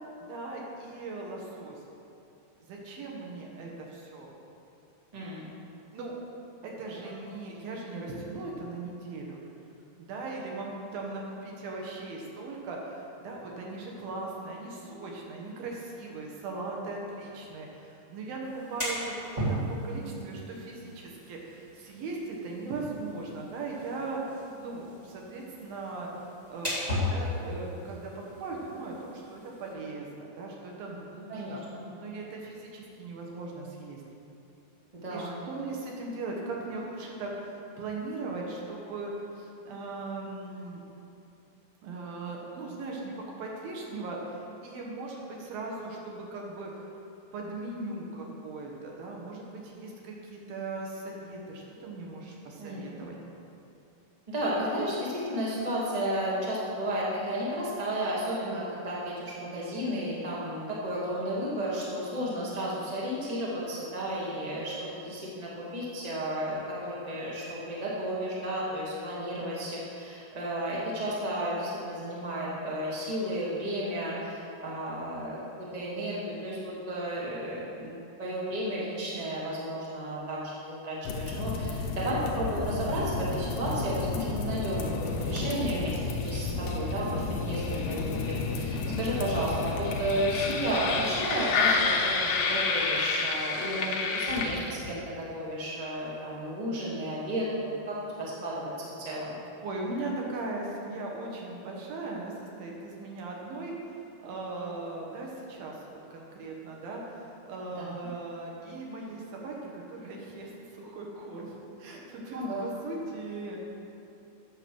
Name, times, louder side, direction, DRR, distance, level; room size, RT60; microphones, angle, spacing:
voice 1, 0.3-1.8 2.7-4.3 5.9-6.2 6.6-9.4 10.1-26.1 26.5-26.7 27.1-31.6 32.0-34.0 35.1-40.8 41.8-46.7 47.3-53.2 99.6-111.5 111.8-113.6, right 3 dB, 70° right, -1 dB, 2.9 m, -39 dB
voice 2, 5.1-5.5 31.3-31.8 34.9-35.3 52.6-53.0 54.3-99.4 107.8-107.9 112.3-112.7, right 1 dB, 85° right, -6 dB, 0.3 m, -33 dB
sound 1, 18.4-29.7, left 1 dB, 35° right, 0.6 m, -37 dB
sound 2, 81.1-95.0, left 4 dB, 75° left, 1.8 m, -30 dB
8.8 x 7.1 x 6.2 m, 2.7 s
omnidirectional pair, 4.6 m